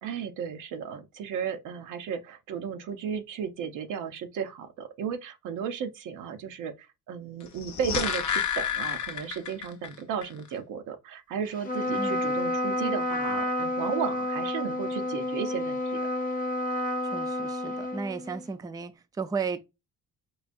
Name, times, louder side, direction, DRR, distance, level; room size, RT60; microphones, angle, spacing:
voice 1, 0.0-15.8, right 7 dB, 85° right, 0.7 m, -34 dB
sound 1, 7.5-9.9 10.2-10.3, left 8 dB, 65° left, 0.6 m, -30 dB
Trumpet, 11.6-18.4, left 1 dB, 30° left, 0.8 m, -30 dB
voice 2, 12.0-12.3 17.0-19.7, right 5 dB, 15° right, 0.4 m, -34 dB
4.8 x 2.4 x 2.5 m
cardioid pair, 90°, 30 cm